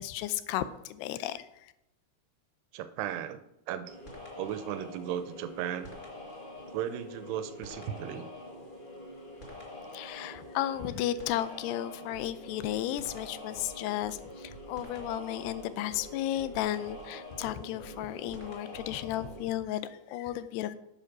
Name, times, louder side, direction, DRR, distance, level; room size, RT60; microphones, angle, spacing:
voice 1, 0.0-1.7 9.9-20.8, left 12 dB, 85° left, 13 dB, 2.7 m, -34 dB
voice 2, 2.7-3.4 3.7-3.9 4.4-5.9 6.7-8.3, right 10 dB, 85° right, 11 dB, 2.8 m, -35 dB
sound 1, 3.8-19.4, left 1 dB, 55° left, 0.5 m, -46 dB
sound 2, 12.1-17.0 17.3-19.5, right 5 dB, 20° left, 4.8 m, -53 dB
8.7 x 7.6 x 5.9 m, 0.84 s
omnidirectional pair, 4.7 m